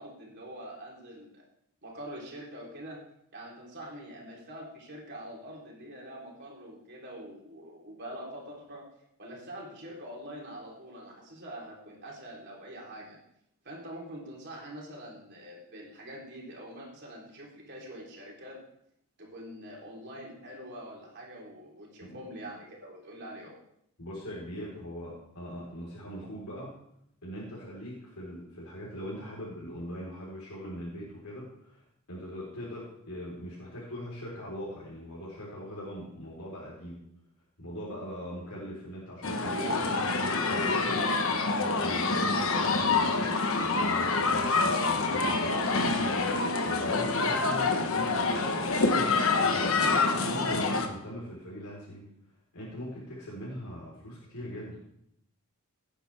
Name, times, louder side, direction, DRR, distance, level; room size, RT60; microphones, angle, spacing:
voice 1, 0.0-1.4 1.8-3.0 3.3-8.9 9.2-13.2 13.6-18.6 19.2-23.5 39.4-39.8 46.8-47.1, right 1 dB, 50° right, -3 dB, 3.7 m, -44 dB
voice 2, 24.0-26.7 27.2-37.0 37.6-41.0 41.3-43.3 43.6-45.5 46.6-52.1 52.5-54.8, equal, 90° left, -7 dB, 4.2 m, -41 dB
sound 1, 39.2-50.9, left 3 dB, 65° left, 1.3 m, -27 dB
17.0 x 10.0 x 3.5 m, 0.74 s
head